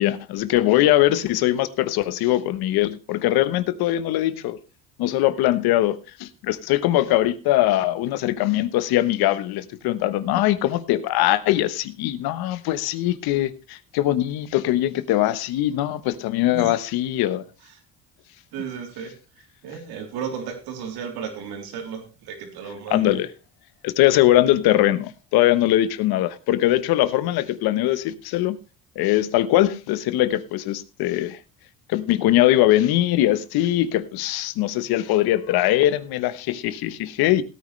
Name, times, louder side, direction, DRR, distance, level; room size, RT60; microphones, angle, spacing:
voice 1, 0.0-4.6 5.0-17.4 22.9-23.3 23.8-28.6 28.9-31.4 31.9-37.4, left 14 dB, 80° left, 1.2 m, -21 dB
voice 2, 18.5-19.1 19.6-23.2, right 7 dB, 80° right, 3.5 m, -34 dB
17.0 x 9.4 x 3.3 m
cardioid pair, 115°, 37 cm